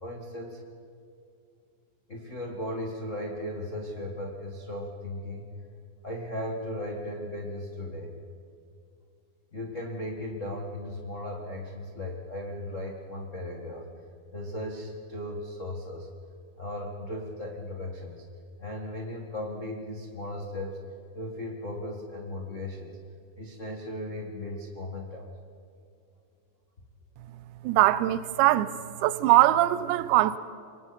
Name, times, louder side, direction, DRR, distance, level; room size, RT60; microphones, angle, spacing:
voice 1, 0.0-0.6 2.1-5.4 6.0-8.1 9.5-13.9 14.3-16.1 16.6-18.2 18.6-20.8 21.1-23.0 23.4-25.2, left 1 dB, 65° left, 0.7 m, -36 dB
voice 2, 27.6-28.7 29.0-30.4, right 15 dB, 85° right, 3.0 m, -21 dB
28.5 x 24.0 x 4.4 m
omnidirectional pair, 5.1 m